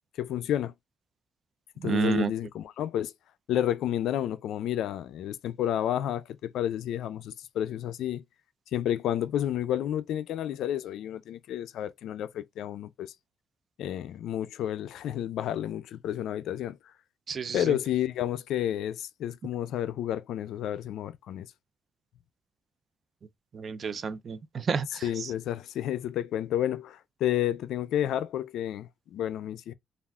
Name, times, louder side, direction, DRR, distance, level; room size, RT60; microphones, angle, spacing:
voice 1, 0.2-0.7 1.8-3.1 3.5-8.2 8.7-13.1 13.8-16.8 17.5-21.5 24.9-29.7, left 11 dB, 80° left, 0.3 m, -31 dB
voice 2, 1.8-2.3 17.3-17.7 23.5-25.0, right 5 dB, 50° right, 0.3 m, -30 dB
3.5 x 2.4 x 2.2 m
cardioid pair, 90°, 0 cm